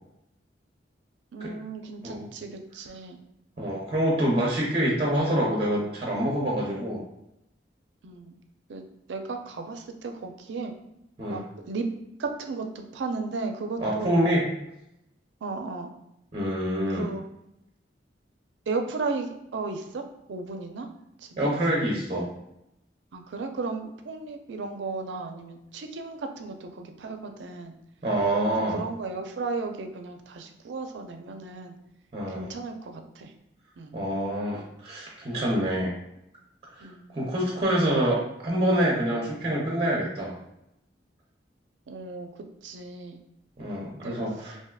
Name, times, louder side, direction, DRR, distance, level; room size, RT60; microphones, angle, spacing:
voice 1, 1.3-3.2 8.0-8.4 8.7-10.7 11.3-11.9 12.2-14.2 15.4-15.9 16.9-17.3 18.7-20.9 21.2-21.5 23.1-27.7 28.7-31.7 32.3-33.3 33.8-34.0 36.8-37.1 41.9-42.3 42.6-43.2 44.0-44.2, right 4 dB, 80° right, 5 dB, 0.4 m, -35 dB
voice 2, 3.6-7.0 11.2-11.4 13.8-14.4 16.3-17.1 21.4-22.3 28.0-28.8 32.1-32.5 33.9-35.9 36.8-40.3 43.6-44.6, right 1 dB, 30° right, -3 dB, 0.6 m, -26 dB
3.4 x 2.6 x 2.2 m, 0.83 s
head